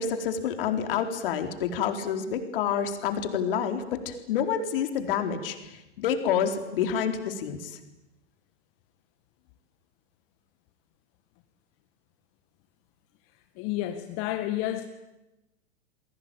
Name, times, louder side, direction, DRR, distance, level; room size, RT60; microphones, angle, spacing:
voice 1, 0.0-7.8, left 8 dB, 55° left, 6 dB, 4.2 m, -28 dB
voice 2, 13.6-14.8, left 13 dB, 40° left, 7 dB, 2.0 m, -30 dB
29.5 x 22.5 x 9.0 m, 0.97 s
figure-of-eight pair, 105°, 34 cm